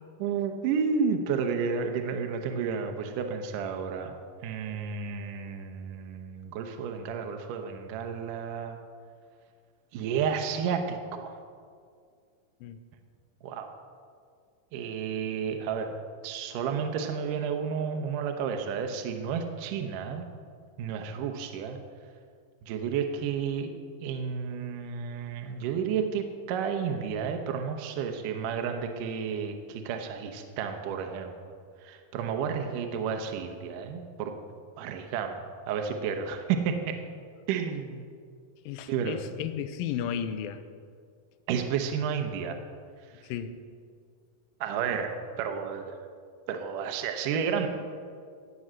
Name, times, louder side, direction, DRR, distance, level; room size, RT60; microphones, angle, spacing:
voice 1, 0.2-4.2 4.4-8.8 9.9-11.4 13.4-13.7 14.7-15.9 16.2-20.3 20.8-21.8 22.7-23.7 24.0-31.3 31.8-34.4 34.8-35.4 35.7-36.9 37.5-38.1 38.9-39.2 41.5-42.6 44.6-46.1 46.5-47.7, right 6 dB, 75° right, 5 dB, 2.3 m, -31 dB
voice 2, 38.7-40.6 43.2-43.6, left 9 dB, 80° left, 10 dB, 2.4 m, -34 dB
18.0 x 6.3 x 7.5 m, 2.2 s
omnidirectional pair, 4.2 m